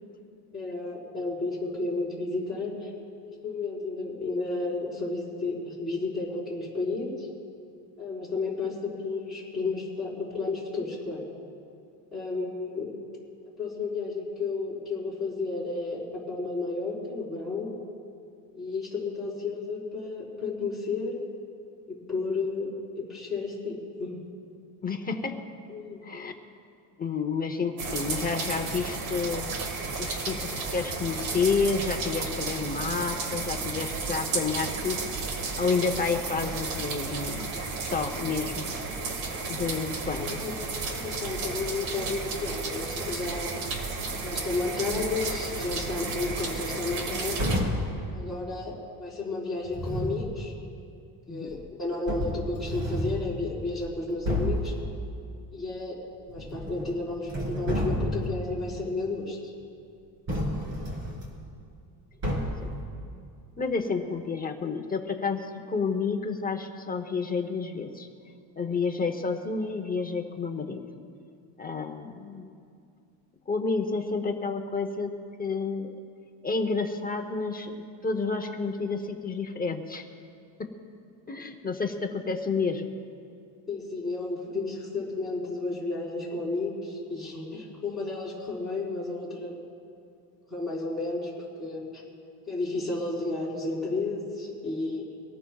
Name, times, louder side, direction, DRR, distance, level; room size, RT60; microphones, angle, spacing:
voice 1, 0.5-2.9 3.2-7.3 8.0-11.3 12.1-12.9 13.6-17.7 18.5-21.1 21.9-24.2 25.7-26.0 40.2-40.5 40.9-43.6 44.2-47.4 48.1-50.5 51.3-54.7 55.5-56.0 56.2-59.5 83.7-89.6 90.5-92.0 92.5-95.0, left 3 dB, ahead, -8 dB, 4.3 m, -32 dB
voice 2, 24.8-25.4 26.0-26.3 27.0-29.5 30.0-35.1 35.3-37.5 37.8-38.7 39.5-40.4 51.3-51.5 63.6-68.1 68.6-70.8 71.6-72.6 73.5-75.1 75.4-75.9 76.4-77.7 78.0-80.1 80.6-80.7 81.3-82.9, left 4 dB, 20° left, 5 dB, 0.8 m, -30 dB
sound 1, 27.8-47.6, right 4 dB, 90° right, 1.9 m, -33 dB
sound 2, 47.4-48.0 49.6-50.3 51.5-51.6 52.1-53.3 53.8-53.9 54.2-54.7 56.3-56.9 57.2-58.4 60.3-61.2 62.2-62.7, equal, 35° right, 3.4 m, -30 dB
24.5 x 18.5 x 2.4 m, 2.4 s
cardioid pair, 150°, 43 cm